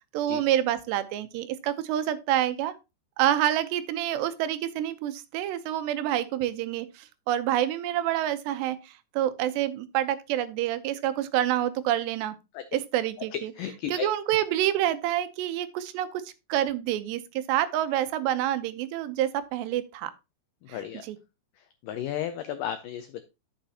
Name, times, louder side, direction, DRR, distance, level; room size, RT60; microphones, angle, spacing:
voice 1, 0.1-2.7 3.2-12.4 12.7-13.5 13.9-20.1 20.7-21.2, right 12 dB, 90° right, 3.0 m, -27 dB
voice 2, 13.3-14.1 20.7-21.1 21.8-23.2, left 10 dB, 90° left, 1.9 m, -33 dB
11.5 x 7.3 x 2.8 m
omnidirectional pair, 4.8 m